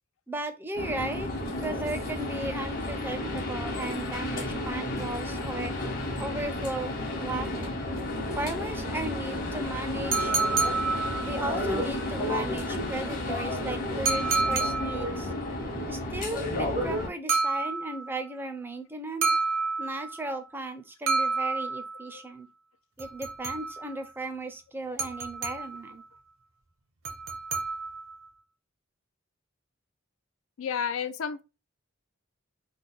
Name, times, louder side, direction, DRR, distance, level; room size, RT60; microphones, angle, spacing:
voice 1, 0.3-1.3 1.6-5.7 6.2-6.9 7.2-7.8 8.4-10.4 11.2-15.3 15.9-19.4 19.8-22.5 23.0-26.0, right 2 dB, 10° right, 0.4 m, -36 dB
sound 1, 0.7-17.1, left 1 dB, 45° left, 1.1 m, -32 dB
sound 2, 10.1-11.6 14.1-15.2 17.3-18.2 19.2-20.2 21.1-22.1 23.0-24.0 25.0-25.9 27.0-28.1, right 4 dB, 85° right, 0.9 m, -29 dB
voice 2, 30.6-31.4, left 7 dB, 80° left, 0.4 m, -32 dB
3.3 x 2.1 x 4.0 m
head